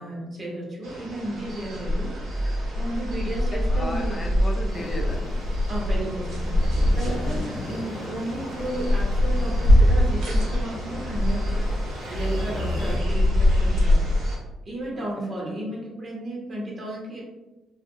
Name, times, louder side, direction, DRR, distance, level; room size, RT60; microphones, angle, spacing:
voice 1, 0.0-2.1 2.7-4.2 5.7-6.5 6.9-11.6 12.1-14.1 14.6-17.2, right 1 dB, 40° right, -3 dB, 1.0 m, -33 dB
sound 1, 0.8-14.4, left 1 dB, 80° right, 0.9 m, -24 dB
voice 2, 3.5-5.3 7.0-7.4 12.5-12.7 14.9-15.3, left 1 dB, 30° left, 2 dB, 0.4 m, -37 dB
sound 2, 4.7-13.0, left 2 dB, 80° left, 0.6 m, -35 dB
2.4 x 2.4 x 2.7 m, 1.1 s
cardioid pair, 90°, 0 cm